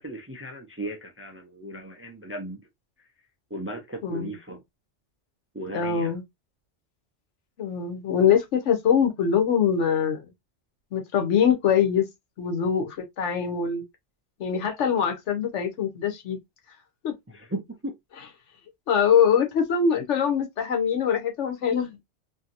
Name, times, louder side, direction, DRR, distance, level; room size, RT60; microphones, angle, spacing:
voice 1, 0.0-2.6 3.5-4.6 5.5-6.1 17.3-17.9, right 1 dB, 25° right, 0.3 m, -36 dB
voice 2, 4.0-4.4 5.7-6.2 7.6-10.2 10.9-12.1 12.4-13.8 14.4-16.4 17.0-17.1 18.9-22.0, left 7 dB, 90° left, 1.1 m, -23 dB
2.7 x 2.7 x 2.4 m
omnidirectional pair, 1.2 m